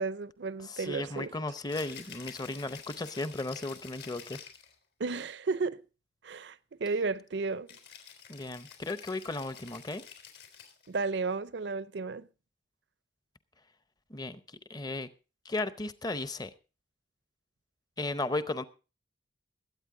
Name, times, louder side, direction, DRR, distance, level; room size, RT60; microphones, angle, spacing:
voice 1, 0.0-1.3 5.0-5.8 6.2-7.7 10.9-12.3, right 4 dB, 70° right, 0.5 m, -33 dB
voice 2, 0.6-4.4 8.3-10.0 14.1-15.1 15.4-16.5 18.0-18.6, left 2 dB, 20° left, 0.7 m, -35 dB
Rattle (instrument), 1.6-4.7 7.7-10.9, left 8 dB, 65° left, 3.7 m, -49 dB
21.0 x 8.8 x 3.7 m
head